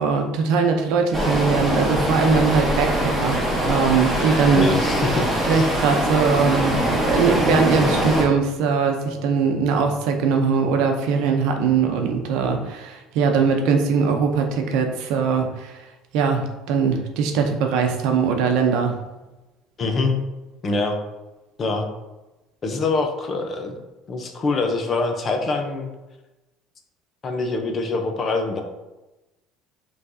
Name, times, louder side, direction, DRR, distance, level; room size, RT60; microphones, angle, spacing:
voice 1, 0.0-4.7 5.5-15.8 16.1-18.9, right 5 dB, 75° right, 4 dB, 0.7 m, -21 dB
sound 1, 1.1-8.3, equal, 15° right, 1.3 m, -22 dB
voice 2, 4.5-5.7 19.8-20.2 20.6-21.0 21.6-21.9 22.6-23.8 24.1-25.9 27.2-28.6, left 3 dB, 35° left, 5 dB, 0.7 m, -24 dB
5.6 x 3.2 x 2.7 m, 1.0 s
cardioid pair, 115°, 0 cm